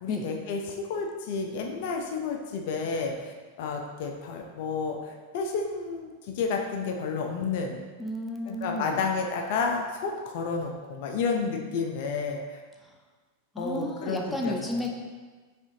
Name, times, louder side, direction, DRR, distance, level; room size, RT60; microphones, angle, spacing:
voice 1, 0.0-7.8 8.5-12.6 13.6-14.8, left 4 dB, 60° left, 2 dB, 0.5 m, -31 dB
voice 2, 8.0-9.0 12.8-12.9 13.5-14.9, left 1 dB, 5° left, 0 dB, 0.5 m, -32 dB
3.5 x 3.4 x 2.7 m, 1.4 s
hypercardioid pair, 100°, 0 cm